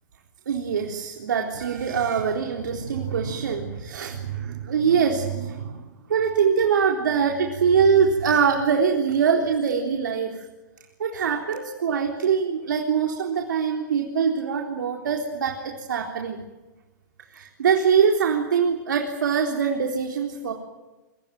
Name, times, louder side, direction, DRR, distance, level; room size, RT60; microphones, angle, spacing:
voice 1, 0.5-5.8 6.1-10.5 11.0-16.4 17.3-20.5, right 6 dB, 85° right, 1 dB, 3.9 m, -23 dB
29.0 x 23.5 x 7.7 m, 1.1 s
hypercardioid pair, 140°, 10 cm